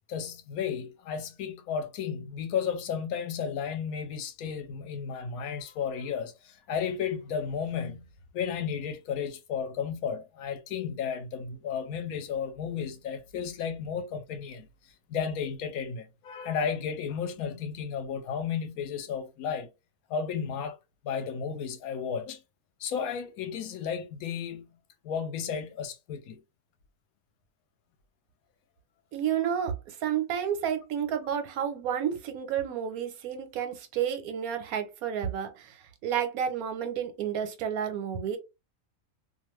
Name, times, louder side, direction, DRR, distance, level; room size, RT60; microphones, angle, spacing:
voice 1, 0.1-8.1 8.3-14.7 15.1-19.7 20.1-20.8 21.0-22.4 22.8-24.7 25.0-26.4, left 7 dB, 85° left, 1.1 m, -33 dB
voice 2, 29.1-38.4, right 8 dB, 90° right, 1.1 m, -31 dB
2.5 x 2.4 x 3.0 m
omnidirectional pair, 1.5 m